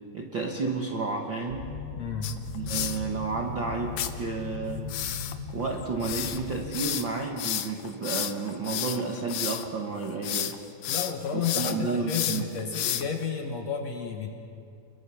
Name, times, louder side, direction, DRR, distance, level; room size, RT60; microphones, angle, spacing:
voice 1, 0.1-1.7 2.5-4.9 5.5-10.6 11.3-12.5, right 4 dB, 80° right, 1 dB, 1.0 m, -31 dB
sound 1, 1.5-6.7, left 3 dB, 25° left, 1.6 m, -38 dB
voice 2, 2.0-2.3 10.9-14.3, left 6 dB, 55° left, 3 dB, 2.1 m, -32 dB
sound 2, 2.2-3.0 4.0-4.1 4.9-9.7 10.0-10.6 10.8-13.2, left 11 dB, 85° left, 1.5 m, -31 dB
29.5 x 22.0 x 5.7 m, 2.5 s
omnidirectional pair, 4.4 m